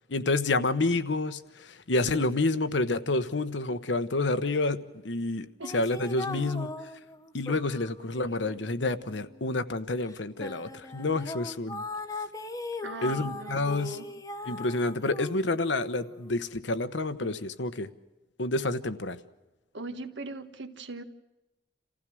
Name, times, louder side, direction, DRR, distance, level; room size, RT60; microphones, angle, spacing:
voice 1, 0.1-5.5 5.7-6.7 7.3-11.8 13.0-14.0 14.4-17.9 18.4-19.2, left 2 dB, 85° left, 1.1 m, -29 dB
sound 1, 5.6-9.6 10.1-16.6, left 2 dB, 20° left, 1.1 m, -39 dB
voice 2, 12.8-14.1 17.2-17.4 19.7-21.0, right 2 dB, 85° right, 1.6 m, -40 dB
28.5 x 15.5 x 6.2 m
head